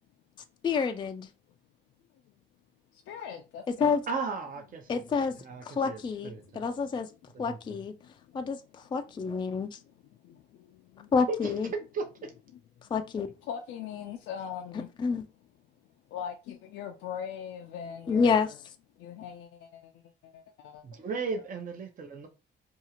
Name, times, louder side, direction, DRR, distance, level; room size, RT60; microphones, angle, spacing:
voice 1, 0.6-1.3 3.7-4.0 4.9-5.4 5.6-7.1 7.4-7.9 8.3-9.7 11.1-11.7 12.9-13.3 15.0-15.2 18.1-18.5, left 5 dB, 25° left, 0.3 m, -28 dB
voice 2, 2.9-3.9 5.0-5.1 6.4-6.7 8.0-8.5 10.2-11.1 13.5-14.9 16.1-18.5 19.0-21.1, left 8 dB, 85° left, 0.4 m, -41 dB
voice 3, 4.1-5.0 5.4-6.6 7.3-7.8 11.3-12.3 20.8-22.3, right 4 dB, 45° right, 0.7 m, -36 dB
2.7 x 2.4 x 2.8 m
cardioid pair, 90°, 20 cm